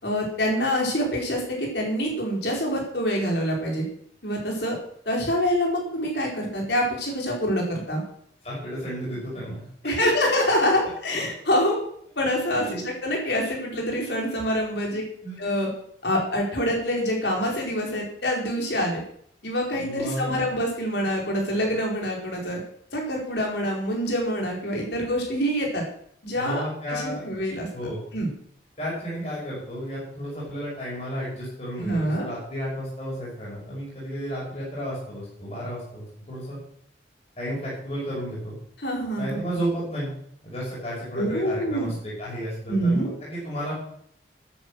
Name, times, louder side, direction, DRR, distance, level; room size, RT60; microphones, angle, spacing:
voice 1, 0.0-3.8 4.2-4.8 5.1-8.0 9.8-11.8 12.2-15.0 15.4-15.7 16.0-19.0 19.4-22.6 22.9-25.8 26.2-28.3 31.8-32.3 38.8-39.4 41.1-41.9 42.7-43.2, equal, 65° left, 0 dB, 4.6 m, -26 dB
voice 2, 8.4-9.7 12.5-12.9 15.2-15.4 19.7-20.4 26.3-27.2 27.7-28.0 28.8-36.6 37.4-38.5 39.2-40.1 40.4-43.7, equal, 35° left, -7 dB, 6.1 m, -32 dB
12.5 x 10.5 x 6.4 m, 0.66 s
head